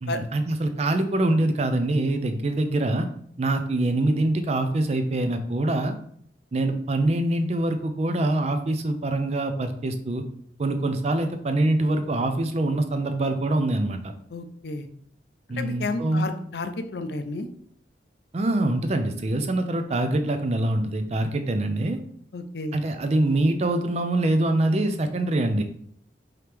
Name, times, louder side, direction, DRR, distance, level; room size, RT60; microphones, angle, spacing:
voice 1, 0.0-3.1 3.4-6.0 6.5-10.3 10.6-14.1 15.5-16.3 18.3-22.0 22.7-25.6, right 2 dB, 35° right, 8 dB, 0.4 m, -24 dB
voice 2, 14.3-14.9 15.6-17.5 22.3-22.8, left 2 dB, 65° left, 9 dB, 0.5 m, -31 dB
4.9 x 3.0 x 3.3 m, 0.64 s
head